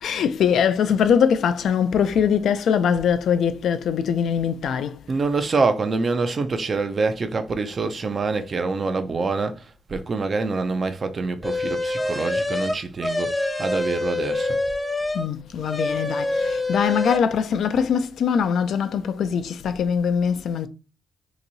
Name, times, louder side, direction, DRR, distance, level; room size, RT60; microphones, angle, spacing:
voice 1, 0.0-5.0 5.3-5.5 15.1-20.7, left 7 dB, 75° left, 0.4 m, -22 dB
voice 2, 5.1-14.6, right 4 dB, 40° right, 0.5 m, -25 dB
sound 1, 11.4-15.3 15.6-17.2, left 2 dB, 10° left, 0.5 m, -26 dB
2.9 x 2.7 x 3.9 m
cardioid pair, 105°, 0 cm